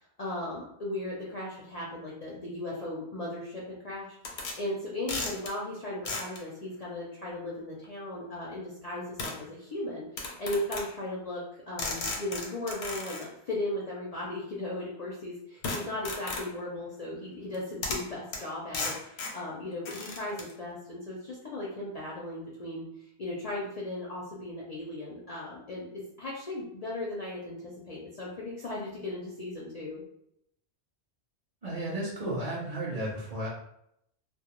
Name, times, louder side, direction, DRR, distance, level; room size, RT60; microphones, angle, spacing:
voice 1, 0.2-22.8 23.2-30.0, left 1 dB, 55° left, -6 dB, 0.4 m, -37 dB
sound 1, 4.2-4.6 5.1-5.5 6.1-6.4 7.8-7.9 9.2-9.4 10.2-10.9 11.8-13.3 15.6-16.5 17.5-17.6 17.8-18.1 18.3-18.4 18.7-19.4 19.9-20.5, left 3 dB, 85° left, 0.9 m, -35 dB
voice 2, 31.6-33.5, right 1 dB, 45° right, -6 dB, 0.6 m, -33 dB
2.2 x 2.0 x 2.9 m, 0.76 s
omnidirectional pair, 1.1 m